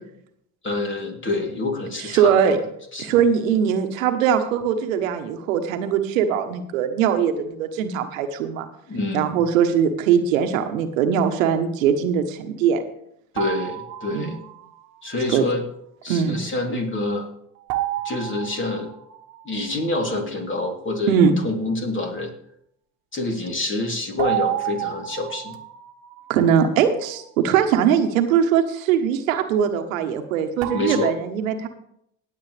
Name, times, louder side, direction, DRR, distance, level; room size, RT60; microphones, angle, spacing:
voice 1, 0.6-2.7 2.9-3.2 8.9-9.4 13.3-14.4 15.0-15.6 16.0-17.3 18.0-18.9 19.5-22.3 23.1-25.6 30.7-31.1, left 2 dB, 30° left, 2 dB, 3.4 m, -27 dB
voice 2, 2.1-2.6 3.0-8.6 9.1-12.8 14.1-14.3 15.3-15.4 16.1-16.4 21.1-21.3 26.3-31.7, right 8 dB, 85° right, 7 dB, 1.3 m, -21 dB
sound 1, 13.4-14.9 17.7-20.1 24.2-27.3 30.6-31.1, right 13 dB, 65° right, 1.3 m, -31 dB
18.5 x 8.0 x 3.4 m, 0.73 s
hypercardioid pair, 75°, 39 cm